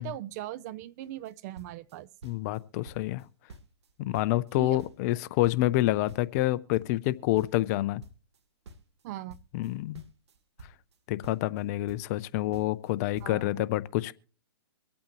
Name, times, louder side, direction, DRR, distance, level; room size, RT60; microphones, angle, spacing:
voice 1, 0.0-2.1 4.6-4.8 9.0-9.4 13.2-13.7, right 14 dB, 35° right, 0.5 m, -39 dB
sound 1, 1.0-1.3 1.6-2.6 2.9-3.2 3.5-5.2 5.4-8.4 8.7-11.0 11.2-12.3 12.5-12.9 13.2-13.3, right 2 dB, 70° right, 1.7 m, -50 dB
voice 2, 2.2-3.3 4.0-8.0 9.5-10.0 11.1-14.1, left 16 dB, 35° left, 0.5 m, -28 dB
24.0 x 8.6 x 3.0 m
hypercardioid pair, 135°, 15 cm